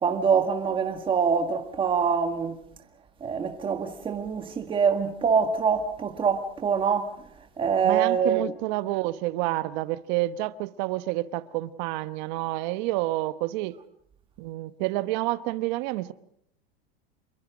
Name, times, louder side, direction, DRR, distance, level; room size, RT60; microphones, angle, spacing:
voice 1, 0.0-2.6 3.2-7.1 7.6-8.4, right 6 dB, 15° right, 1.8 m, -24 dB
voice 2, 7.8-13.8 14.4-16.1, right 17 dB, 45° right, 1.0 m, -29 dB
27.0 x 22.0 x 5.2 m
supercardioid pair, 145°, 31 cm